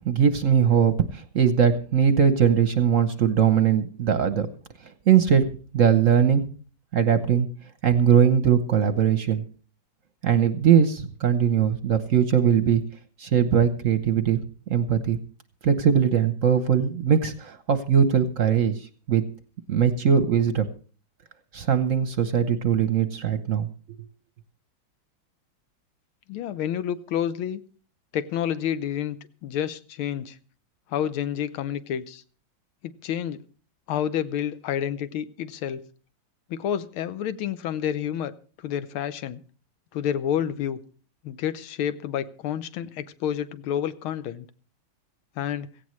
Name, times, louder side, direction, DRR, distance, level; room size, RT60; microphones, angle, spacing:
voice 1, 0.0-4.5 5.1-6.4 6.9-7.5 7.8-9.4 10.2-12.8 13.2-14.4 14.7-15.2 15.6-18.7 19.1-19.2 19.7-20.7 21.5-23.7, right 8 dB, 55° right, 0.9 m, -20 dB
voice 2, 26.3-27.6 28.1-29.2 29.4-30.4 30.9-32.2 32.8-33.4 33.9-35.9 36.5-38.3 38.6-39.4 39.9-40.8 41.2-44.5 45.4-45.7, left 9 dB, 90° left, 1.7 m, -29 dB
17.0 x 15.5 x 3.1 m
omnidirectional pair, 2.2 m